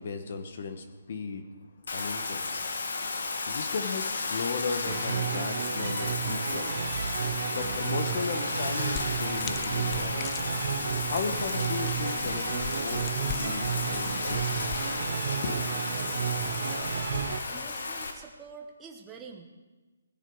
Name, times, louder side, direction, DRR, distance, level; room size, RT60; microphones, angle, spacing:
voice 1, 0.0-1.5 1.9-2.6 3.1-6.8 7.5-10.3 11.1-13.1 13.4-14.7 15.4-15.7, left 5 dB, 50° left, 8 dB, 1.1 m, -36 dB
Bathtub (filling or washing), 1.9-18.1, left 3 dB, 70° left, 1.7 m, -33 dB
sound 1, 4.8-17.4, right 8 dB, 45° right, 0.7 m, -33 dB
sound 2, 8.9-15.1, left 9 dB, 20° left, 0.5 m, -42 dB
voice 2, 17.5-19.5, right 5 dB, 10° right, 1 dB, 0.9 m, -46 dB
16.5 x 9.9 x 4.7 m, 1.2 s
hypercardioid pair, 165°, 0 cm